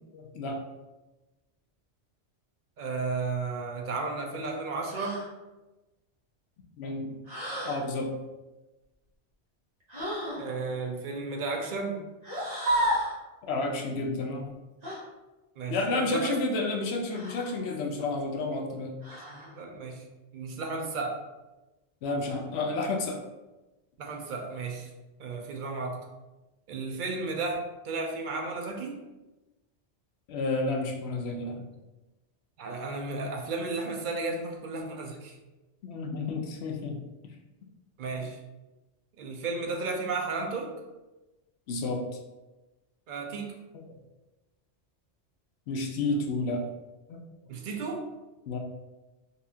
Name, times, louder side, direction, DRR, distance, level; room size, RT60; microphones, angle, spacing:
voice 1, 0.1-0.6 6.8-7.1 7.6-8.1 13.4-14.5 15.7-19.0 22.0-23.2 30.3-31.6 35.8-37.0 41.7-42.0 43.9-44.0 45.7-46.6 47.1-47.2 48.5-48.6, left 2 dB, 70° left, 2 dB, 0.8 m, -30 dB
voice 2, 2.8-5.2 10.4-12.0 15.6-16.4 19.1-20.1 20.3-21.2 24.0-24.9 25.2-26.0 26.7-29.0 32.6-35.4 38.0-38.4 39.2-40.7 43.1-43.5 47.5-48.1, right 3 dB, 55° right, 2 dB, 0.6 m, -33 dB
sound 1, 4.9-5.3 7.3-7.8 9.9-10.4 12.2-13.2 14.8-15.0 17.1-17.6 19.0-19.5, right 1 dB, 40° right, 1.0 m, -31 dB
4.1 x 2.4 x 2.7 m, 1.1 s
omnidirectional pair, 1.2 m